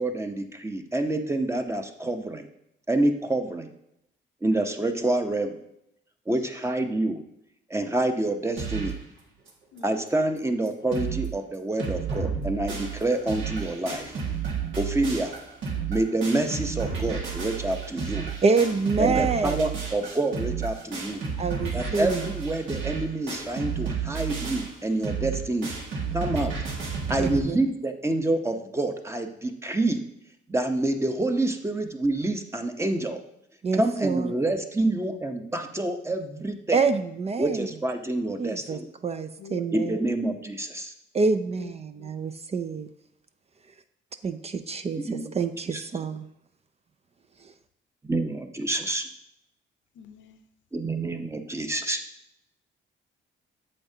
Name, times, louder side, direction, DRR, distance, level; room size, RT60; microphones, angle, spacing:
voice 1, 0.0-2.5 2.9-3.7 4.4-5.6 6.3-7.2 7.7-8.9 9.8-14.1 14.8-15.4 15.9-18.3 19.0-21.2 21.7-25.7 26.1-26.6 27.1-30.0 30.5-33.2 33.7-36.8 37.4-38.9 39.7-40.9 45.1-45.3 45.7-45.8 48.0-49.1 50.7-52.0, right 2 dB, 15° right, 6 dB, 0.8 m, -27 dB
sound 1, 8.6-9.0 9.5-9.6 9.8-9.9 10.4-10.5 10.7-11.3 11.5-27.4, right 6 dB, 75° right, 1.9 m, -32 dB
voice 2, 18.4-19.6 21.4-22.3 27.2-27.6 33.6-34.3 36.7-37.7 38.4-40.0 41.1-42.9 44.2-46.3, right 4 dB, 30° right, 9 dB, 0.5 m, -27 dB
voice 3, 39.4-40.1 41.6-41.7 42.0-42.1 50.0-50.4, left 6 dB, 70° left, 9 dB, 0.8 m, -44 dB
8.5 x 7.1 x 2.8 m, 0.81 s
cardioid pair, 90°, 20 cm